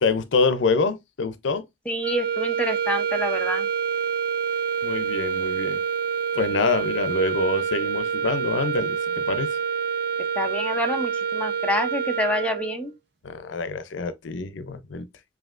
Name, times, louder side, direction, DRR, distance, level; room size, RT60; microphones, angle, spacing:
voice 1, 0.0-1.6 4.8-5.8 6.3-9.5 13.2-15.1, left 4 dB, 90° left, 0.5 m, -26 dB
voice 2, 1.9-3.7 10.4-12.9, left 1 dB, 5° left, 0.7 m, -27 dB
sound 1, 2.0-12.9, right 7 dB, 60° right, 0.6 m, -27 dB
7.3 x 2.7 x 2.5 m
head